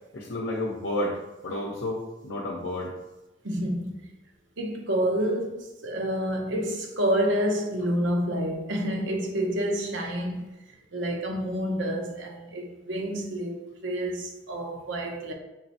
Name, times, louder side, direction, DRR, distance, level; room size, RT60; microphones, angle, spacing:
voice 1, 0.1-1.2 1.4-2.9, left 1 dB, 65° left, 0.7 m, -31 dB
voice 2, 3.4-4.0 4.6-10.5 10.9-15.3, equal, 75° right, 0.7 m, -28 dB
4.6 x 3.0 x 2.8 m
head